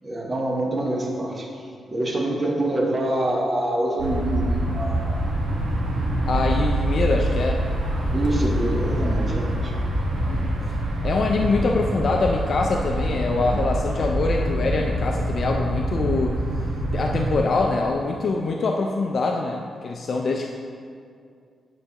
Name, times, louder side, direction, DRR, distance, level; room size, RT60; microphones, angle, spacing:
voice 1, 0.0-5.3 7.8-9.7 15.4-15.7, right 1 dB, 25° right, -2 dB, 0.9 m, -26 dB
sound 1, 4.0-17.4, right 1 dB, 80° right, 1.2 m, -25 dB
voice 2, 6.3-7.6 10.3-10.5 11.0-16.4 16.9-20.5, left 3 dB, 45° left, 1 dB, 0.4 m, -24 dB
9.1 x 6.6 x 2.9 m, 2.3 s
wide cardioid pair, 160°, 0 cm